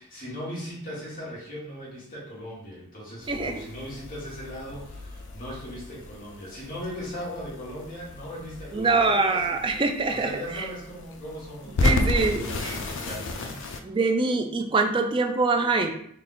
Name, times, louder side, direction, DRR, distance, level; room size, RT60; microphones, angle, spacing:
voice 1, 0.0-9.6 10.1-13.5, equal, 40° left, -7 dB, 1.4 m, -38 dB
sound 1, 3.2-13.8, left 2 dB, 55° left, 0.4 m, -33 dB
voice 2, 3.3-3.6 8.7-10.7 11.8-12.7 13.8-15.9, right 3 dB, 25° right, 6 dB, 0.3 m, -24 dB
3.4 x 2.3 x 3.8 m, 0.68 s
head